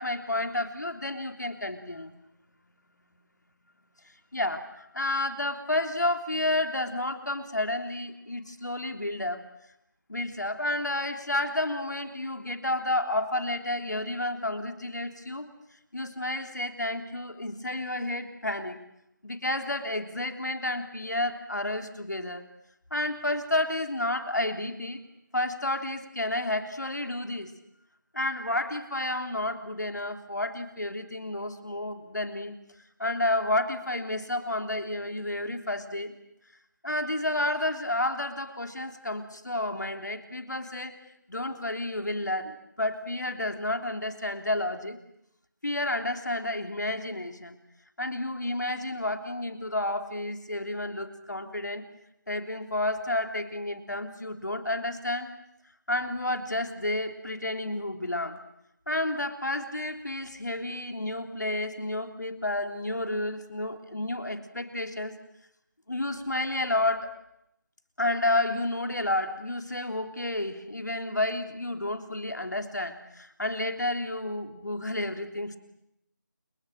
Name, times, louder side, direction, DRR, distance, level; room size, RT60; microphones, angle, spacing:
voice 1, 0.0-2.1 4.3-9.4 10.1-15.5 15.9-18.8 19.2-22.5 22.9-25.0 25.3-27.5 28.1-32.5 33.0-36.2 36.8-41.0 41.3-45.0 45.6-47.6 48.0-51.8 52.3-55.3 55.9-58.4 58.9-65.2 65.9-67.1 68.0-75.6, left 1 dB, 65° left, 6 dB, 3.5 m, -31 dB
30.0 x 29.0 x 6.6 m, 0.81 s
figure-of-eight pair, 165°, 10 cm